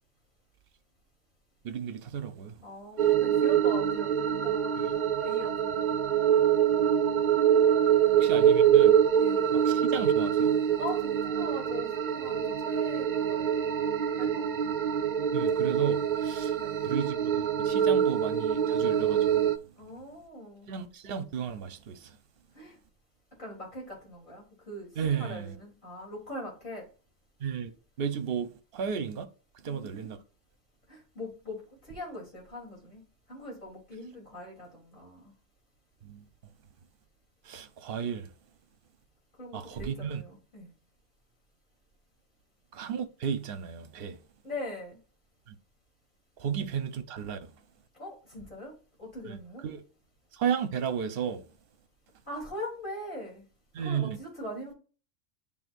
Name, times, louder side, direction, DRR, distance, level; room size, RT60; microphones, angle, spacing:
voice 1, 1.6-2.5 8.2-8.9 9.5-10.6 15.3-16.5 16.8-19.5 20.7-22.1 25.0-25.5 27.4-27.7 28.0-29.3 29.6-30.2 36.0-36.2 37.5-38.3 39.5-40.2 42.7-44.2 46.4-47.4 49.3-49.4 49.6-49.8 50.3-51.4 53.7-54.2, right 7 dB, 50° right, 0.9 m, -33 dB
voice 2, 2.6-6.0 7.9-8.2 9.2-9.5 10.8-13.7 14.1-14.6 16.6-16.8 19.8-20.7 22.5-22.8 23.4-26.8 29.7-30.2 30.9-33.0 33.3-35.3 39.4-40.7 44.4-45.0 47.9-48.7 49.0-49.6 52.3-53.5 53.8-54.7, left 1 dB, 40° left, 3.5 m, -41 dB
sound 1, 3.0-19.6, right 9 dB, 70° right, 0.4 m, -25 dB
11.0 x 3.6 x 2.6 m
omnidirectional pair, 1.3 m